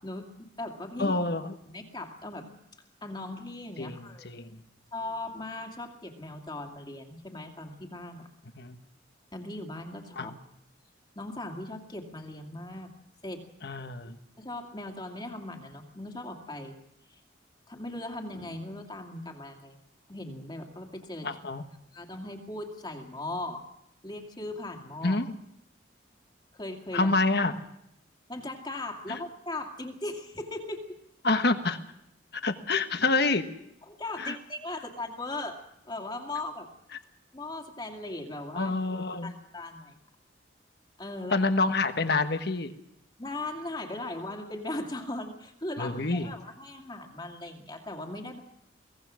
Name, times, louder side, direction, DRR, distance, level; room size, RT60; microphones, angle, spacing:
voice 1, 0.0-1.1 1.7-2.5 3.0-4.3 4.9-8.3 9.3-10.3 11.2-12.9 13.2-13.5 14.4-16.8 17.7-19.8 20.1-21.3 21.9-23.6 24.0-25.2 26.5-27.1 28.3-30.9 33.8-36.7 37.3-38.7 39.2-39.9 41.0-41.4 43.2-48.4, left 2 dB, 20° left, 3 dB, 2.2 m, -38 dB
voice 2, 1.0-1.5 3.8-4.6 8.5-8.8 10.2-10.3 13.6-14.2 21.2-21.6 25.0-25.4 26.9-27.6 29.1-29.2 31.2-31.8 32.3-33.4 34.2-34.4 38.5-39.3 41.3-42.7 45.8-46.3, left 3 dB, 55° left, 8 dB, 1.3 m, -27 dB
23.0 x 18.0 x 6.3 m, 0.78 s
head